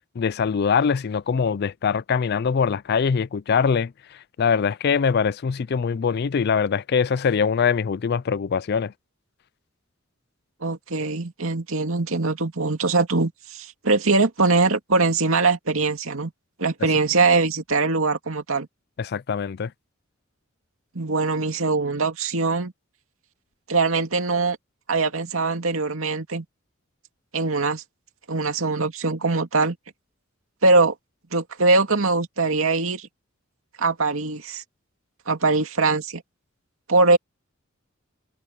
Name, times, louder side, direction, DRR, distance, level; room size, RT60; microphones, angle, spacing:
voice 1, 0.2-3.9 4.4-8.9 19.0-19.7, left 6 dB, 50° left, 0.4 m, -23 dB
voice 2, 10.6-16.3 16.6-18.7 20.9-22.7 23.7-24.6 24.9-26.4 27.3-27.8 28.3-29.8 30.6-30.9 31.3-33.1 33.8-34.6 35.3-36.2 36.9-37.2, right 3 dB, 85° right, 2.3 m, -22 dB
head